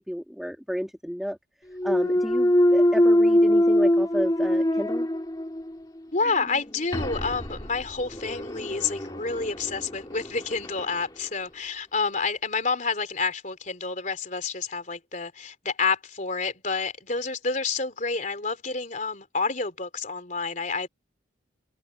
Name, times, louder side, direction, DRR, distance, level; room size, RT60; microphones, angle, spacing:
voice 1, 0.0-1.4 1.8-5.1, equal, ahead, 2.0 m, -32 dB
Thump thud, 1.7-5.8 6.2-10.9, left 1 dB, 20° left, 2.0 m, -23 dB
voice 2, 6.1-20.9, left 4 dB, 40° left, 3.6 m, -29 dB
open air
head